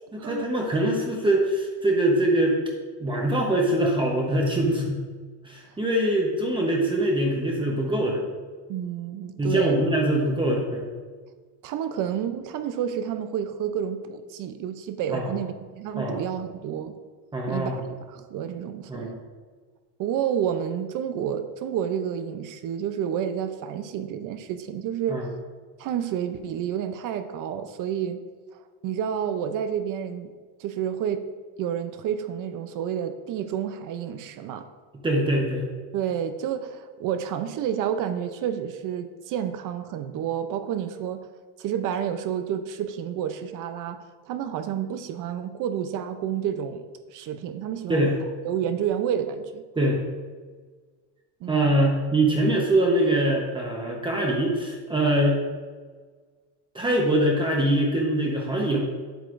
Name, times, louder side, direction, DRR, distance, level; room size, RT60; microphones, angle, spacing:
voice 1, 0.1-2.6 3.0-5.0 5.4-8.3 9.4-10.9 15.1-15.3 16.0-16.2 17.3-17.8 18.9-19.2 25.1-25.3 35.0-35.6 47.9-48.1 49.8-50.0 51.5-55.4 56.7-58.8, right 1 dB, 10° right, -1 dB, 0.9 m, -23 dB
voice 2, 8.7-9.8 11.6-17.0 17.5-17.8 18.1-19.2 20.0-25.3 25.8-28.2 28.5-30.3 30.6-31.3 31.6-34.7 35.9-41.3 41.6-48.1 48.4-49.6 51.4-51.8, right 9 dB, 55° right, 9 dB, 0.6 m, -30 dB
8.9 x 7.8 x 2.5 m, 1.5 s
cardioid pair, 155°, 39 cm